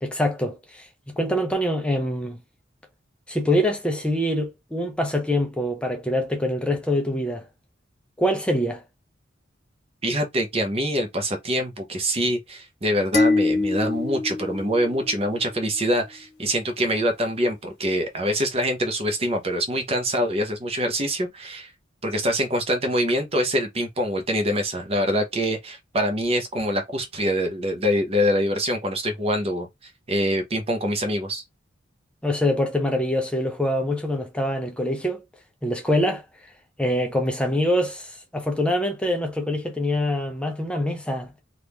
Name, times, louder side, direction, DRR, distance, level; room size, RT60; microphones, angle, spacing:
voice 1, 0.0-0.8 1.2-2.4 3.3-7.4 8.2-8.8 32.2-35.2 35.6-36.2 36.8-41.3, left 1 dB, 5° left, 0.6 m, -24 dB
voice 2, 10.0-21.7 22.0-31.4, equal, 30° right, 0.7 m, -25 dB
sound 1, 13.1-15.6, left 3 dB, 65° left, 1.5 m, -24 dB
3.5 x 2.5 x 2.9 m
head